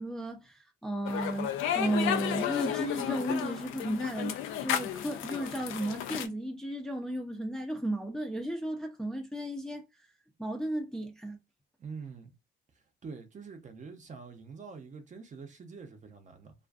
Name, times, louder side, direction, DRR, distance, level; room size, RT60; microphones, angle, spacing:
voice 1, 0.0-4.3 4.6-9.8 10.4-11.4, right 1 dB, 5° left, 0.5 m, -34 dB
sound 1, 1.1-6.3, left 10 dB, 85° left, 0.4 m, -33 dB
voice 2, 11.8-12.3 13.0-16.5, right 5 dB, 40° right, 0.6 m, -45 dB
2.4 x 2.4 x 2.3 m
cardioid pair, 90°, 20 cm